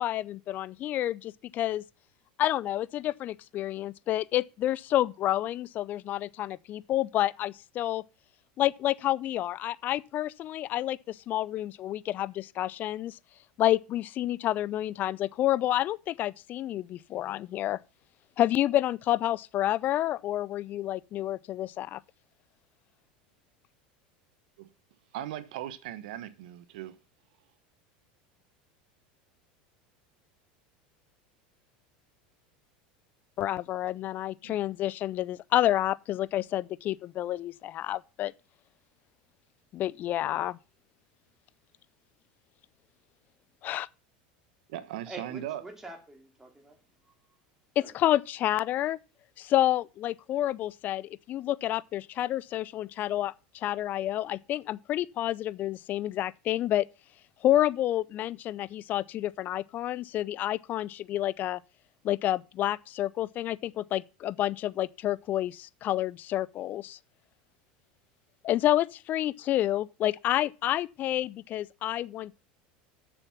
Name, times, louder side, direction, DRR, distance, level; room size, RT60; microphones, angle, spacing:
voice 1, 0.0-1.8 2.4-8.0 8.6-13.2 13.6-17.8 18.4-22.0 33.4-38.3 39.7-40.6 43.6-43.9 47.8-49.0 49.4-56.9 57.4-61.6 62.0-67.0 68.4-72.3, left 13 dB, 40° left, 0.4 m, -29 dB
voice 2, 25.1-26.9 34.4-34.5 44.7-45.6, right 12 dB, 75° right, 1.1 m, -38 dB
voice 3, 45.1-46.8 47.0-47.1 47.8-48.0, right 2 dB, 10° right, 2.8 m, -46 dB
7.3 x 7.0 x 7.0 m
supercardioid pair, 120°, 5 cm